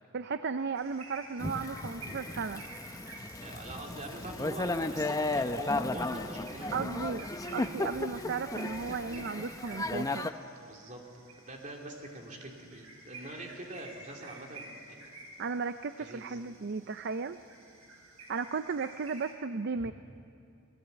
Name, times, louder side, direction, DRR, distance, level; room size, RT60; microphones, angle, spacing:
voice 1, 0.1-2.6 6.7-10.3 15.4-17.4 18.3-19.9, right 5 dB, 50° right, 11 dB, 0.5 m, -35 dB
sound 1, 0.7-19.3, right 2 dB, 80° right, 4.8 m, -51 dB
Thunder / Rain, 1.4-10.3, left 2 dB, 15° left, 0.7 m, -35 dB
voice 2, 3.4-6.7 7.6-7.7 10.6-11.0 11.3-15.1 16.0-16.4 19.8-19.9, right 1 dB, 35° right, 1 dB, 3.0 m, -45 dB
26.0 x 18.5 x 8.2 m, 2.5 s
head